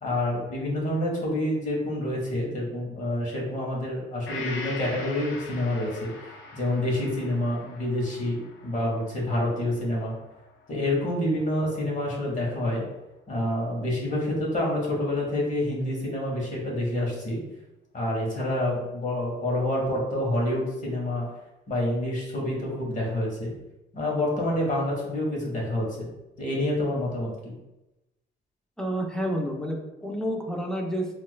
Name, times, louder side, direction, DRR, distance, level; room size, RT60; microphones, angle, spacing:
voice 1, 0.0-6.1 6.5-10.1 10.7-12.8 13.3-17.4 17.9-21.3 21.7-23.5 23.9-26.1 26.4-27.5, left 1 dB, 40° left, -3 dB, 1.3 m, -27 dB
Gong, 4.3-11.9 12.3-12.4, left 3 dB, 85° left, 0.5 m, -43 dB
voice 2, 28.8-31.1, equal, 5° left, 0 dB, 0.6 m, -29 dB
4.3 x 2.5 x 2.2 m, 0.98 s
cardioid pair, 90°, 20 cm